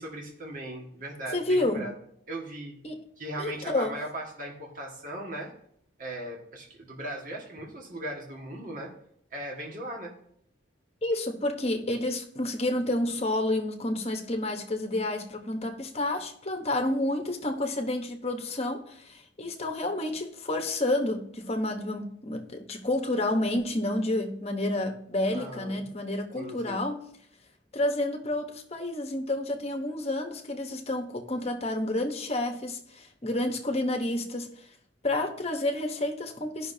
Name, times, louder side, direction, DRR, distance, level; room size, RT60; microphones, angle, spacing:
voice 1, 0.0-1.9 2.3-2.8 3.2-5.5 6.0-8.9 9.3-10.2 25.3-25.9 26.3-26.8, right 1 dB, 45° right, 1.8 m, -38 dB
voice 2, 1.3-1.9 2.8-3.0 3.4-4.0 11.0-27.0 27.7-34.5 35.0-36.7, left 1 dB, 30° left, 1.1 m, -30 dB
15.5 x 5.9 x 2.8 m
head